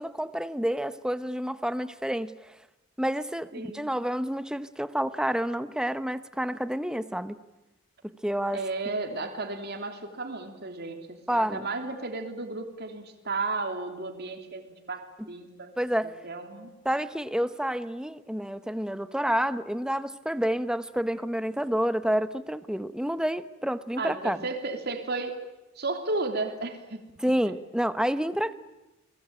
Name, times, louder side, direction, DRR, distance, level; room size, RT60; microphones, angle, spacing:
voice 1, 0.0-2.6 3.0-7.4 8.2-8.6 11.3-11.7 15.2-15.3 15.8-16.2 16.8-24.4 27.2-28.5, equal, 5° right, 1.0 m, -29 dB
voice 2, 3.5-3.9 8.5-15.8 16.2-16.7 24.0-25.4 25.7-27.0, right 3 dB, 55° right, 3.2 m, -33 dB
30.0 x 21.0 x 8.9 m
head